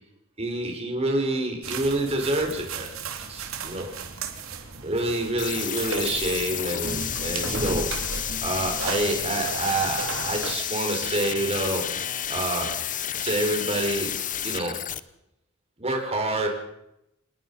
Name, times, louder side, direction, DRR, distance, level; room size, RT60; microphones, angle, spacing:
voice 1, 0.4-2.9 3.3-3.9 4.8-7.9 8.4-11.9 12.3-12.8 13.2-14.8 15.8-16.5, right 1 dB, 30° right, 2 dB, 5.2 m, -27 dB
sound 1, 1.6-10.6, right 4 dB, 85° right, 3.0 m, -35 dB
sound 2, 5.4-15.0, left 10 dB, 40° left, 1.0 m, -31 dB
27.5 x 20.0 x 5.7 m, 0.83 s
head